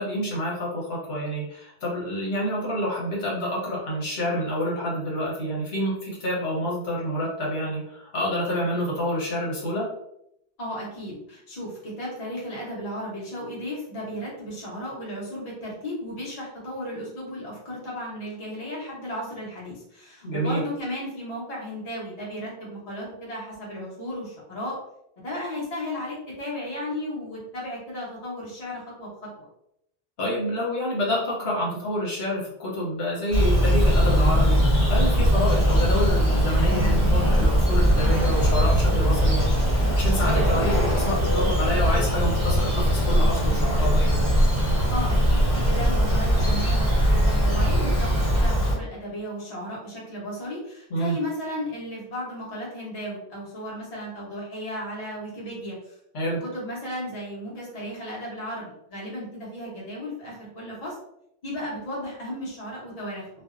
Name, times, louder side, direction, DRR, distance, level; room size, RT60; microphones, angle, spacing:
voice 1, 0.0-9.9 20.2-20.6 30.2-44.2 50.9-51.2 56.1-56.4, equal, 75° left, -5 dB, 1.1 m, -28 dB
voice 2, 10.6-24.8 25.2-29.1 29.4-29.5 44.9-56.0 56.4-61.0 61.4-63.3, equal, 40° left, -5 dB, 0.9 m, -34 dB
Bird vocalization bird call bird song, 33.3-48.7, equal, 20° right, 0.7 m, -20 dB
2.5 x 2.1 x 2.4 m, 0.77 s
omnidirectional pair, 1.1 m